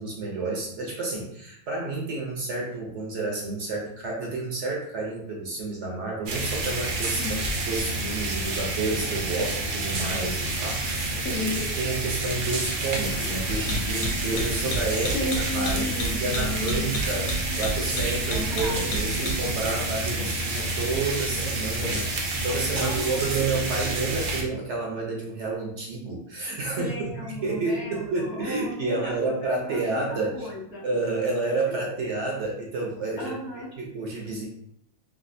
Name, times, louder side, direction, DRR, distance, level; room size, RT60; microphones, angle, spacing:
voice 1, 0.0-15.1 15.5-30.5 30.8-33.3 33.8-34.5, right 3 dB, 60° right, -2 dB, 0.9 m, -30 dB
sound 1, 6.3-24.4, right 2 dB, 85° right, 0.4 m, -29 dB
voice 2, 11.1-11.6 15.1-17.0 18.3-18.8 19.7-19.8 22.8-23.3 26.8-31.0 33.2-33.7, left 2 dB, 55° left, -4 dB, 0.9 m, -34 dB
sound 2, 12.8-23.6, left 1 dB, 80° left, 1.1 m, -34 dB
3.2 x 2.4 x 2.6 m, 0.71 s
omnidirectional pair, 1.5 m